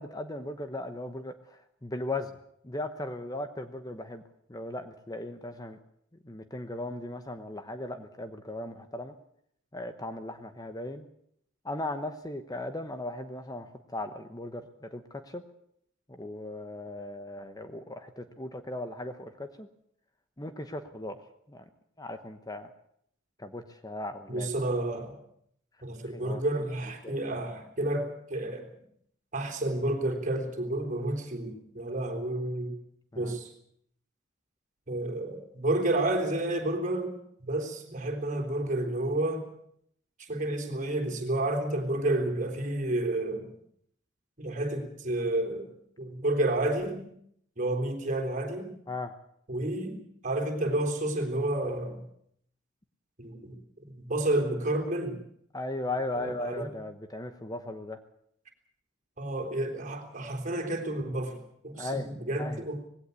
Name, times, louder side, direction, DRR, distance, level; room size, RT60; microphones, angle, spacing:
voice 1, 0.0-2.3 2.6-4.2 4.5-5.8 6.2-9.1 9.7-11.1 11.6-15.4 16.1-19.7 20.4-21.2 21.5-21.6 22.0-22.7 23.4-24.5 26.1-26.4 27.0-27.2 33.1-33.3 48.9-49.1 55.5-58.0 61.8-62.1 62.4-62.6, left 2 dB, 20° left, 9 dB, 1.0 m, -37 dB
voice 2, 24.3-25.1 25.8-28.7 29.3-32.7 33.1-33.5 34.9-37.1 37.4-39.5 40.2-43.5 44.4-45.7 46.0-47.1 47.6-48.7 49.5-52.0 53.2-53.6 54.0-55.2 56.1-56.7 59.2-62.8, right 1 dB, 40° right, 3 dB, 3.7 m, -30 dB
19.5 x 17.0 x 8.3 m, 0.70 s
head